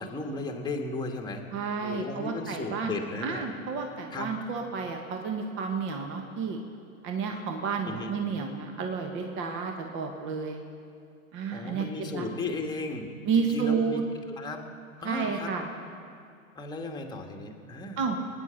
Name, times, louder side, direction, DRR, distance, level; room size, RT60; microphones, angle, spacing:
voice 1, 0.0-1.4 1.8-3.4 4.1-4.3 7.9-8.1 11.5-13.1 13.3-14.0 14.3-14.6 15.0-15.5 16.5-18.0, left 2 dB, 10° left, 2 dB, 1.6 m, -35 dB
voice 2, 1.5-2.9 3.2-6.6 7.0-10.6 11.3-11.8 12.1-12.2 13.3-14.0 15.0-15.7 18.0-18.2, right 5 dB, 30° right, 3 dB, 1.5 m, -31 dB
22.0 x 10.0 x 5.8 m, 2.3 s
figure-of-eight pair, 110°, 42 cm